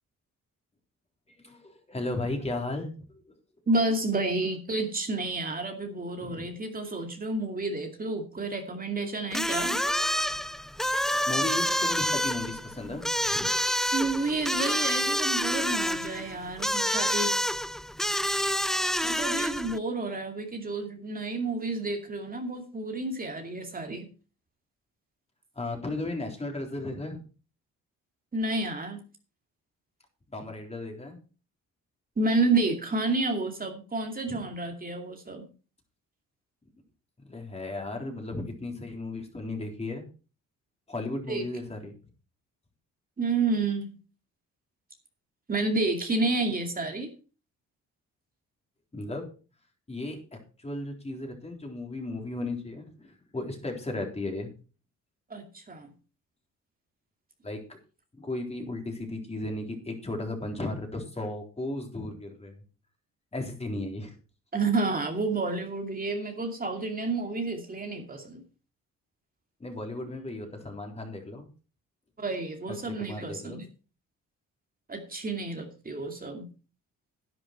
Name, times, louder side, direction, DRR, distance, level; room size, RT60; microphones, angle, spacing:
voice 1, 1.4-2.9 3.2-3.3 6.2-6.5 11.1-13.5 25.6-27.2 30.3-31.2 34.3-34.4 37.2-40.1 40.9-41.9 48.9-49.3 49.9-50.2 50.6-54.5 57.4-57.6 58.1-62.6 63.3-64.1 69.6-71.5 72.9-73.6, left 2 dB, 20° left, 2 dB, 3.9 m, -35 dB
voice 2, 3.7-9.8 13.9-17.4 19.0-24.1 28.3-29.0 32.2-35.5 41.3-41.4 43.2-44.0 45.5-47.1 55.3-55.9 64.5-68.4 72.2-73.6 74.9-76.5, right 3 dB, 30° right, 4 dB, 2.5 m, -30 dB
sound 1, 9.3-19.8, equal, ahead, 0.4 m, -28 dB
11.0 x 10.0 x 4.6 m, 0.35 s
cardioid pair, 90°, 30 cm